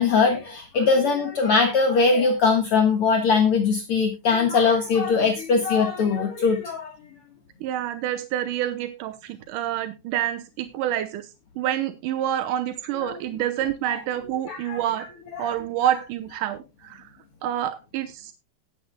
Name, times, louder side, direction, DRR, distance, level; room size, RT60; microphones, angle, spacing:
voice 1, 0.0-6.9 13.0-13.1 13.9-14.0 14.5-14.8 15.3-15.5, left 4 dB, 65° left, 3 dB, 1.4 m, -21 dB
voice 2, 7.6-11.3 11.6-15.1 15.4-17.0 17.4-18.3, right 11 dB, 75° right, 9 dB, 1.9 m, -27 dB
19.0 x 8.5 x 2.2 m, 0.25 s
omnidirectional pair, 4.7 m